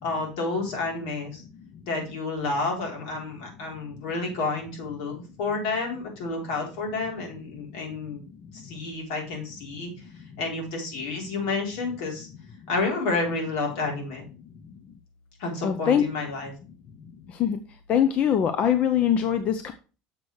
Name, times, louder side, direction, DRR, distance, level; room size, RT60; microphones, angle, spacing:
voice 1, 0.0-1.4 1.8-8.2 8.5-9.9 10.4-12.3 12.7-14.3 15.4-16.5, left 3 dB, 75° left, 0 dB, 4.0 m, -30 dB
voice 2, 15.6-16.0 17.3-17.6 17.9-19.7, left 9 dB, 40° left, 8 dB, 0.7 m, -22 dB
6.9 x 6.2 x 4.7 m, 0.35 s
cardioid pair, 145°, 4 cm